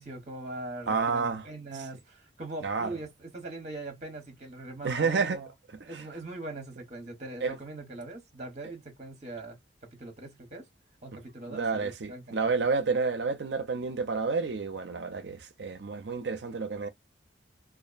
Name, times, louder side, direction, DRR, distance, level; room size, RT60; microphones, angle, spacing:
voice 1, 0.0-5.5 5.8-10.7 11.0-12.5, right 2 dB, 40° right, 1.0 m, -41 dB
voice 2, 0.9-1.5 2.6-2.9 4.8-5.4 5.9-6.0 7.4-7.6 11.5-16.9, right 4 dB, 65° right, 0.6 m, -30 dB
2.5 x 2.1 x 2.4 m
head